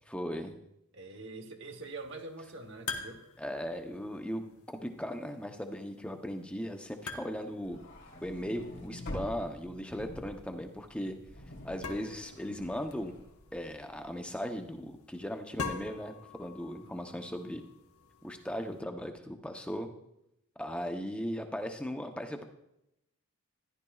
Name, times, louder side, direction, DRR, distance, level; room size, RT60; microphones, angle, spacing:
voice 1, 0.1-0.6 3.4-7.8 8.2-11.2 11.6-13.2 13.5-17.6 18.2-19.9 20.6-22.4, equal, 5° left, 5 dB, 0.7 m, -38 dB
voice 2, 0.9-3.2 16.8-17.2, right 3 dB, 55° right, 3 dB, 1.1 m, -45 dB
sound 1, 1.7-18.8, left 4 dB, 90° left, 1.1 m, -47 dB
sound 2, 7.6-14.0, left 1 dB, 55° left, 2.1 m, -46 dB
13.5 x 11.0 x 2.4 m, 0.83 s
head